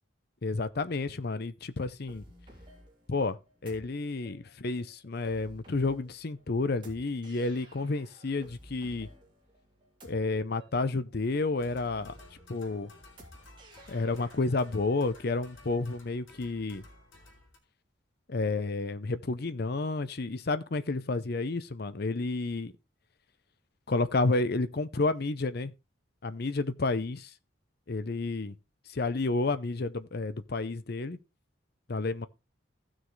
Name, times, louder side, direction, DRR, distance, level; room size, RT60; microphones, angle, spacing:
voice 1, 0.4-2.2 3.1-9.1 10.0-12.1 12.5-12.9 13.9-16.8 18.3-22.7 23.9-25.7 26.2-27.3 27.9-28.5 28.9-31.2 31.9-32.3, left 3 dB, 50° left, 0.6 m, -30 dB
sound 1, 2.1-14.8, right 1 dB, 25° right, 3.2 m, -54 dB
sound 2, 11.6-17.6, left 2 dB, 80° left, 2.8 m, -55 dB
15.5 x 6.3 x 3.2 m
head